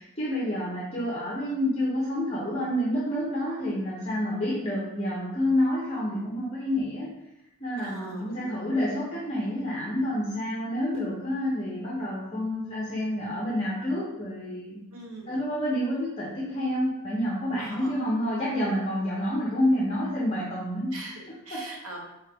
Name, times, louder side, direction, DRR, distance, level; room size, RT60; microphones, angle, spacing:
voice 1, 0.0-7.1 7.6-14.8 15.3-21.0 21.5-21.7, left 1 dB, 25° left, -6 dB, 0.7 m, -28 dB
voice 2, 7.8-8.7 14.9-15.4 17.6-18.0 20.9-22.0, right 2 dB, 80° right, 0 dB, 0.8 m, -42 dB
4.6 x 2.9 x 3.4 m, 0.90 s
head